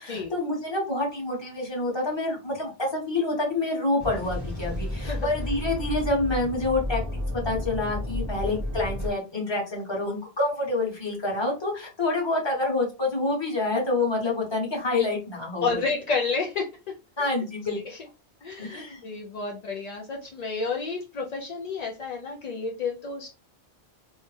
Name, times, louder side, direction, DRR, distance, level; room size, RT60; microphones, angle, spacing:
voice 1, 0.0-7.0 7.3-15.8 17.2-17.8 18.6-19.0, left 2 dB, 25° left, -1 dB, 1.0 m, -27 dB
sound 1, 4.0-9.1, left 1 dB, 20° right, 0.6 m, -32 dB
voice 2, 15.6-16.7 17.7-18.0 18.4-23.3, left 4 dB, 55° left, 0 dB, 0.5 m, -30 dB
2.7 x 2.1 x 3.2 m, 0.30 s
omnidirectional pair, 1.1 m